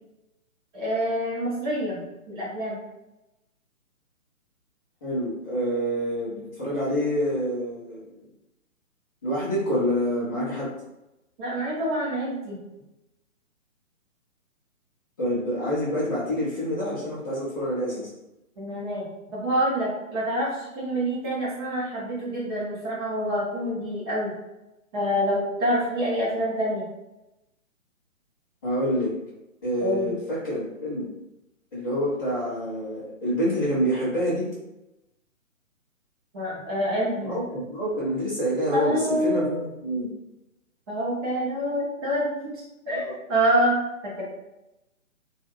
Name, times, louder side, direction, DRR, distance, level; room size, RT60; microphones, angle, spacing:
voice 1, 0.7-2.0 2.3-2.8 11.4-12.6 18.6-24.3 24.9-26.9 29.8-30.2 36.3-37.4 38.7-39.6 40.9-44.2, equal, 20° right, -6 dB, 0.8 m, -27 dB
voice 2, 5.0-8.2 9.2-10.7 15.2-18.1 28.6-29.1 29.6-31.0 31.7-34.5 37.2-40.1 42.9-43.2, equal, 20° left, -12 dB, 0.6 m, -27 dB
2.8 x 2.4 x 3.0 m, 0.94 s
figure-of-eight pair, 135°, 41 cm